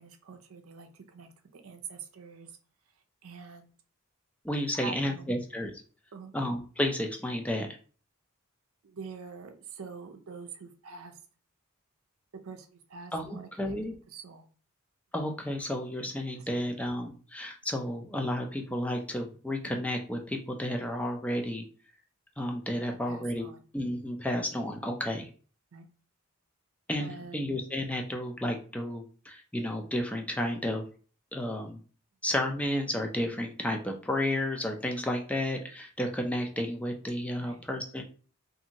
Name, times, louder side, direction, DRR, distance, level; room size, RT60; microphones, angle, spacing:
voice 1, 0.0-2.6 3.2-3.7 4.7-5.4 6.1-6.3 8.8-11.2 12.3-13.8 14.1-14.5 16.4-16.8 22.9-23.6 25.7-25.9 27.0-27.5 37.4-37.6, right 5 dB, 80° right, 6 dB, 0.5 m, -45 dB
voice 2, 4.4-5.7 6.3-7.8 13.1-13.9 15.1-21.6 22.4-23.4 23.7-25.3 26.9-30.8 31.3-31.8 32.2-38.0, left 1 dB, 5° left, 3 dB, 0.4 m, -32 dB
2.6 x 2.6 x 2.8 m, 0.40 s
head